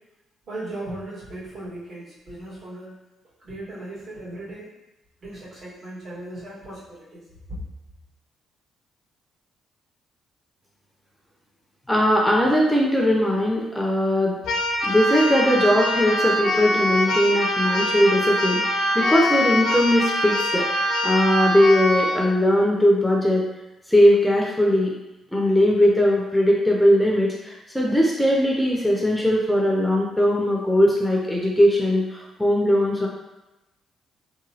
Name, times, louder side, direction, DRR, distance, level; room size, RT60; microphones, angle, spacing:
voice 1, 0.5-3.0 3.4-4.7 5.2-7.6, right 1 dB, 60° right, -9 dB, 1.5 m, -37 dB
voice 2, 11.9-14.4 14.8-23.4 23.9-24.9 25.3-33.1, equal, 5° left, -2 dB, 0.4 m, -20 dB
Keyboard (musical), 14.4-22.2, equal, 90° left, 0.5 m, -23 dB
2.9 x 2.2 x 2.7 m, 0.99 s
cardioid pair, 90°, 0 cm